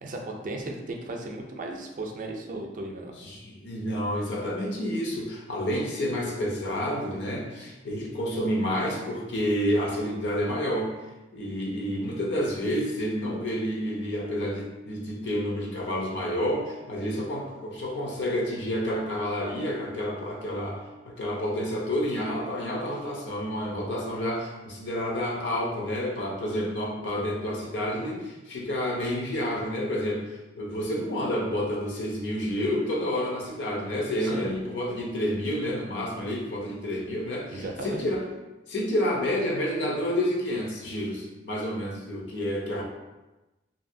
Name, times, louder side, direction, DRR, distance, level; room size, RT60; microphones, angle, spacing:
voice 1, 0.0-3.1 34.2-34.6 37.5-38.1, right 2 dB, 50° right, 2 dB, 0.4 m, -36 dB
voice 2, 3.2-10.9 11.3-20.8 21.1-38.2 38.7-42.8, equal, 80° left, -1 dB, 0.6 m, -29 dB
2.7 x 2.6 x 2.6 m, 1.1 s
head